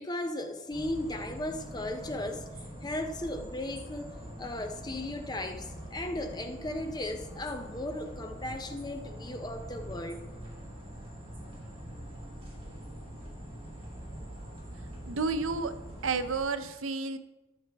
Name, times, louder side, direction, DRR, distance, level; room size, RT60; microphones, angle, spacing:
voice 1, 0.0-2.5 2.8-10.2, left 1 dB, 20° left, 0.6 m, -36 dB
sound 1, 0.7-16.4, right 1 dB, 25° right, 2.9 m, -44 dB
voice 2, 15.0-15.7 16.0-17.2, right 4 dB, 80° right, 0.7 m, -31 dB
13.5 x 7.6 x 3.4 m
head